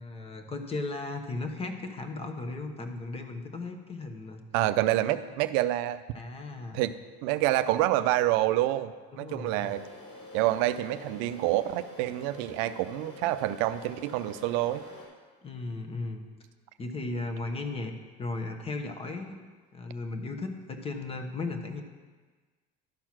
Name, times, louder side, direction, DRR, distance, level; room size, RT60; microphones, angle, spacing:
voice 1, 0.0-4.4 5.1-5.3 6.1-6.9 9.1-9.7 15.4-16.3 16.8-17.9 18.2-19.4 19.7-21.8, left 3 dB, 25° left, 5 dB, 1.1 m, -36 dB
voice 2, 4.5-6.0 6.7-6.9 7.2-9.8 10.3-14.8, right 15 dB, 75° right, 12 dB, 0.5 m, -27 dB
sound 1, 9.4-15.1, left 2 dB, 90° left, 3.4 m, -47 dB
12.0 x 4.5 x 5.9 m, 1.4 s
supercardioid pair, 110°, 21 cm